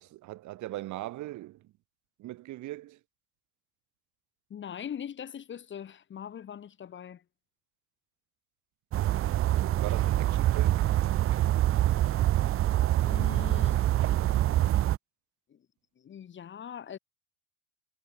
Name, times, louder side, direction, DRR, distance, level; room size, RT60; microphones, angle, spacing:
voice 1, 0.0-1.7 2.2-3.0 9.6-10.9, right 16 dB, 55° right, 5.2 m, -40 dB
voice 2, 4.5-7.2 13.1-13.9 15.5-15.7 16.0-17.0, left 9 dB, 35° left, 2.5 m, -41 dB
sound 1, 8.9-15.0, right 13 dB, 40° right, 0.8 m, -25 dB
supercardioid pair, 115°, 35 cm